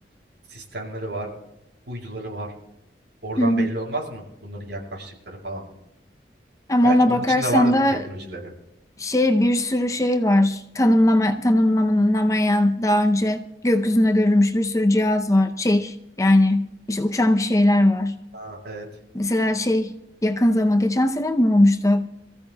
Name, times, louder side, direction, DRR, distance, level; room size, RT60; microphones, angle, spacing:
voice 1, 0.5-1.3 1.9-2.5 3.2-5.6 6.8-8.5 18.3-18.9, right 2 dB, 70° right, 6.7 m, -31 dB
voice 2, 3.4-3.7 6.7-8.0 9.0-18.2 19.1-19.9 20.2-22.1, left 1 dB, 20° left, 0.6 m, -19 dB
27.0 x 15.0 x 2.3 m
head